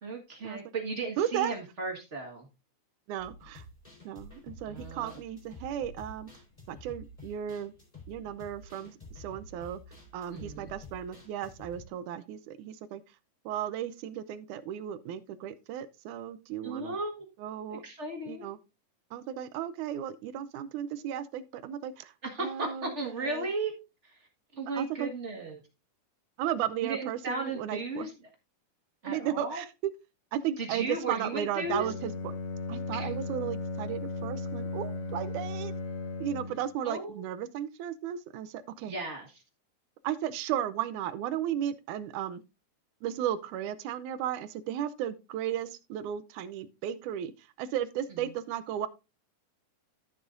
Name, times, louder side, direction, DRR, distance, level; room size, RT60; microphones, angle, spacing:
voice 1, 0.0-2.5 4.6-5.2 10.3-10.7 16.6-17.2 17.7-18.5 22.2-23.7 24.0-24.3 24.5-25.6 26.8-28.3 29.0-29.6 30.6-31.9 32.9-33.2 36.8-37.3 38.9-39.4 48.1-48.2, right 3 dB, 35° right, 1.2 m, -36 dB
voice 2, 1.2-1.5 3.1-3.6 4.1-6.3 6.7-7.7 8.1-9.8 10.1-13.0 13.5-16.9 17.4-17.8 18.3-18.6 19.1-22.1 22.4-22.9 23.2-23.5 24.8-25.1 26.4-28.1 29.1-29.7 30.3-32.3 32.7-35.7 36.2-38.9 40.0-42.4 43.0-47.3 47.6-48.9, right 10 dB, 80° right, 2.1 m, -35 dB
sound 1, 3.2-11.9, left 1 dB, 10° left, 3.8 m, -49 dB
Bowed string instrument, 31.6-36.7, left 3 dB, 60° left, 2.3 m, -36 dB
13.5 x 7.0 x 2.6 m
omnidirectional pair, 3.6 m